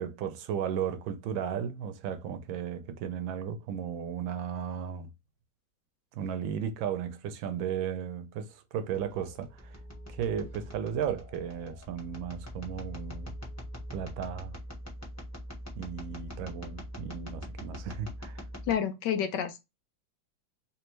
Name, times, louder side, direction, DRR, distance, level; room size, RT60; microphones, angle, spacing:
voice 1, 0.0-5.1 6.1-9.8 10.1-13.4 13.9-14.5 15.8-18.4, right 8 dB, 80° right, 1.4 m, -35 dB
sound 1, 8.9-18.7, equal, 10° left, 1.2 m, -43 dB
voice 2, 18.7-19.6, left 8 dB, 70° left, 1.2 m, -29 dB
3.4 x 3.3 x 3.0 m
omnidirectional pair, 2.1 m